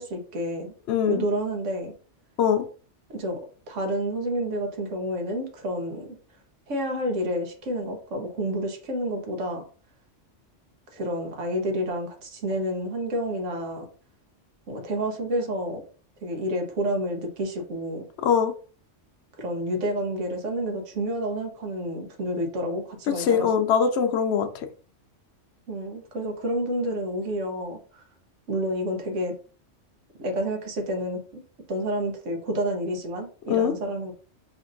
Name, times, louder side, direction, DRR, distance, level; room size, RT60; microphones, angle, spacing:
voice 1, 0.0-0.7 1.1-1.9 3.1-6.2 6.7-9.6 10.9-13.9 14.7-15.8 16.2-18.0 19.4-23.5 25.7-28.0 28.5-29.3 30.2-31.4 31.7-34.1, equal, 85° right, 1.3 m, -29 dB
voice 2, 0.9-1.2 2.4-2.7 18.2-18.5 23.2-24.5 33.5-33.7, left 7 dB, 70° left, 0.8 m, -22 dB
5.0 x 2.6 x 2.5 m
omnidirectional pair, 1.2 m